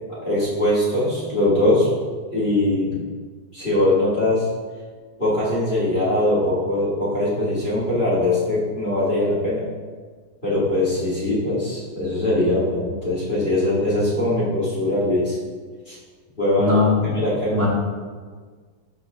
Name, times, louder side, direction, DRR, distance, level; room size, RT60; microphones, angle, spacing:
voice 1, 0.2-1.9 2.2-3.0 3.5-4.5 5.2-9.7 10.4-15.4 15.9-16.0 16.4-16.7 17.1-17.6, left 1 dB, 25° left, -10 dB, 2.2 m, -21 dB
voice 2, 16.6-17.2 17.5-17.7, left 3 dB, 50° right, -9 dB, 2.7 m, -20 dB
13.0 x 4.8 x 2.4 m, 1.5 s
omnidirectional pair, 2.2 m